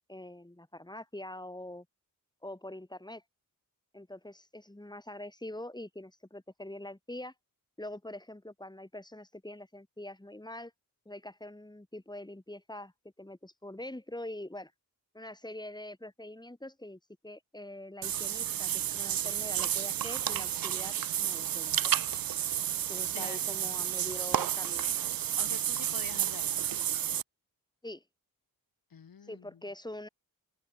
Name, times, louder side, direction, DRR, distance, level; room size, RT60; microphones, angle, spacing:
voice 1, 0.1-1.9 2.4-3.2 3.9-7.3 7.8-10.7 11.0-12.9 13.2-14.7 15.1-21.9 22.9-24.9 27.8-28.0 29.2-30.1, left 1 dB, 10° left, 8.0 m, -44 dB
Water / Bathtub (filling or washing), 18.0-27.2, right 10 dB, 80° right, 0.8 m, -31 dB
voice 2, 23.1-23.7 25.4-26.6 28.9-29.5, left 7 dB, 80° left, 4.4 m, -46 dB
cardioid pair, 75°, 34 cm